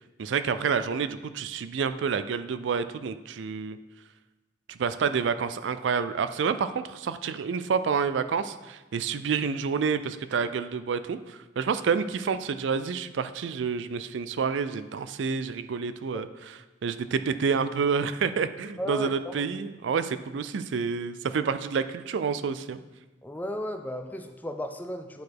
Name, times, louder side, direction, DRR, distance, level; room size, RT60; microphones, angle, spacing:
voice 1, 0.2-3.8 4.7-22.8, right 6 dB, 75° right, 12 dB, 0.4 m, -29 dB
voice 2, 18.8-19.5 23.2-25.2, equal, 10° left, 6 dB, 0.4 m, -35 dB
9.3 x 4.8 x 4.6 m, 1.1 s
head